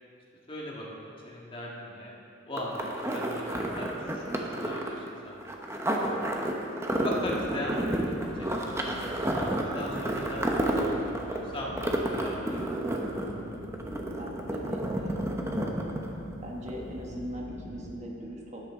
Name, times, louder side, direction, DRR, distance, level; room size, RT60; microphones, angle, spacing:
voice 1, 0.5-2.1 2.5-2.9 3.1-5.5 5.8-6.3 7.0-10.4 11.4-12.7, left 1 dB, 25° left, -4 dB, 1.6 m, -39 dB
sound 1, 2.6-16.3 16.7-16.8, right 1 dB, 15° right, 0.8 m, -30 dB
sound 2, 7.3-18.0, equal, 85° left, 2.2 m, -44 dB
voice 2, 14.2-15.7 16.4-18.6, equal, 35° right, -1 dB, 1.1 m, -40 dB
13.0 x 10.0 x 3.7 m, 2.6 s
head